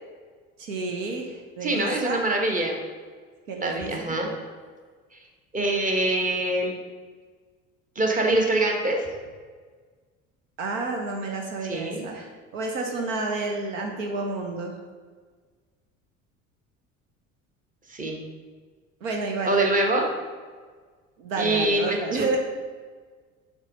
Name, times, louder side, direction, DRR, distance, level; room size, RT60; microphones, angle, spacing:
voice 1, 0.6-2.2 3.5-4.1 10.6-14.8 19.0-19.5 21.2-22.4, right 3 dB, 70° right, 1 dB, 1.0 m, -30 dB
voice 2, 1.6-2.7 3.6-4.3 5.1-5.2 5.5-6.8 7.9-9.1 11.6-12.0 17.9-18.2 19.4-20.1 21.4-22.4, right 2 dB, 20° right, 1 dB, 1.3 m, -24 dB
7.3 x 3.5 x 5.3 m, 1.5 s
figure-of-eight pair, 60°, 40 cm